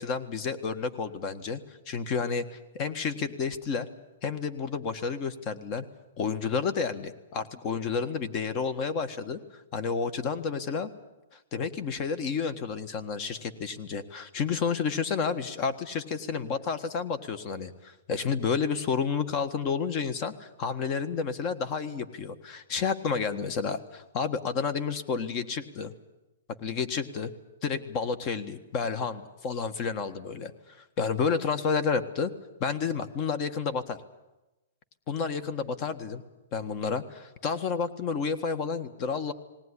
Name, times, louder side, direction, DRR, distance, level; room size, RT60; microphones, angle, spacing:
voice 1, 0.0-3.9 4.2-5.9 6.2-10.9 11.3-25.9 26.6-27.3 27.6-32.3 32.6-34.0 35.1-36.2 36.5-39.3, left 5 dB, 35° left, 11 dB, 1.5 m, -30 dB
19.5 x 18.5 x 9.9 m, 1.0 s
hypercardioid pair, 150°, 0 cm